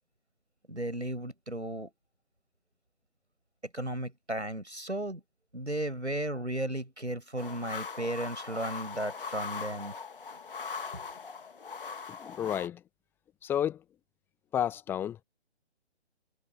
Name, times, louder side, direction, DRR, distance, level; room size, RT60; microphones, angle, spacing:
voice 1, 0.7-1.9 3.7-5.2 5.5-9.9, right 1 dB, 85° right, 6.4 m, -35 dB
sound 1, 7.4-12.7, left 5 dB, 50° left, 1.6 m, -40 dB
voice 2, 12.1-12.8 13.4-13.8 14.5-15.2, left 10 dB, 5° left, 1.4 m, -31 dB
figure-of-eight pair, 145°, 33 cm